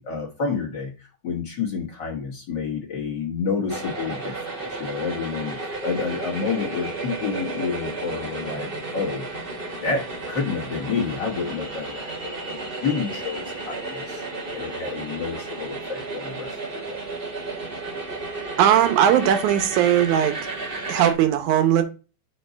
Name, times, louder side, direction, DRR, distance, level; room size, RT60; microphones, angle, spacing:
voice 1, 0.0-9.3 9.8-14.2 14.5-17.0, left 5 dB, 45° left, -2 dB, 1.7 m, -29 dB
sound 1, 3.7-21.1, right 3 dB, 25° right, 1.2 m, -33 dB
voice 2, 18.6-20.3 20.9-21.8, right 10 dB, 90° right, 8 dB, 2.3 m, -18 dB
5.3 x 4.4 x 5.1 m, 0.33 s
omnidirectional pair, 3.3 m